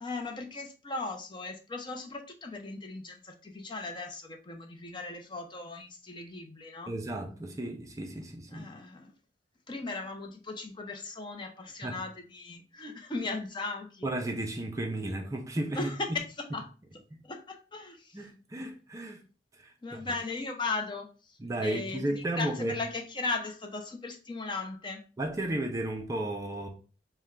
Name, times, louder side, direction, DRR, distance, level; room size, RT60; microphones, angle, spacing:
voice 1, 0.0-7.0 8.5-9.1 9.7-14.1 15.7-16.2 16.5-16.7 17.2-18.3 19.8-25.0, left 3 dB, 25° left, 0.6 m, -37 dB
voice 2, 6.9-8.7 11.8-12.0 14.0-15.9 18.1-19.2 19.6-20.0 21.4-22.8 25.2-26.7, right 1 dB, 20° right, 0.4 m, -34 dB
4.2 x 2.2 x 3.6 m
head